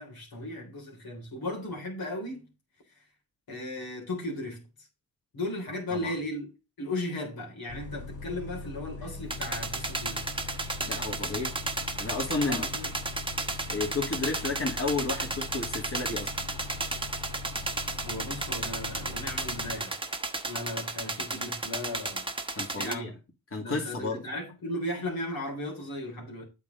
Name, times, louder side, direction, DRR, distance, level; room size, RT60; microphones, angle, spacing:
voice 1, 0.0-2.5 3.5-4.7 5.3-6.5 6.8-10.4 12.4-12.9 18.0-19.9 20.5-22.3 22.8-23.1 23.6-26.5, left 1 dB, 75° left, 3.6 m, -36 dB
Bus, 7.7-19.8, left 3 dB, 55° left, 2.2 m, -41 dB
sound 1, 9.3-22.9, right 3 dB, 15° right, 1.1 m, -34 dB
voice 2, 10.9-11.5 12.0-12.6 13.7-16.3 22.6-23.1 23.5-24.2, left 3 dB, 40° left, 2.6 m, -32 dB
8.5 x 5.8 x 4.0 m
cardioid pair, 80°, 36 cm